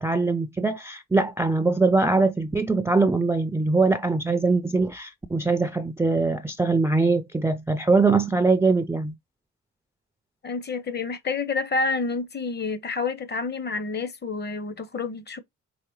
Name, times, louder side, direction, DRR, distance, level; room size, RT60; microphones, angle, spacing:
voice 1, 0.0-9.1, right 3 dB, 10° right, 0.3 m, -22 dB
voice 2, 10.4-15.4, left 4 dB, 35° left, 0.7 m, -29 dB
4.8 x 2.9 x 3.0 m
cardioid pair, 90°, 30 cm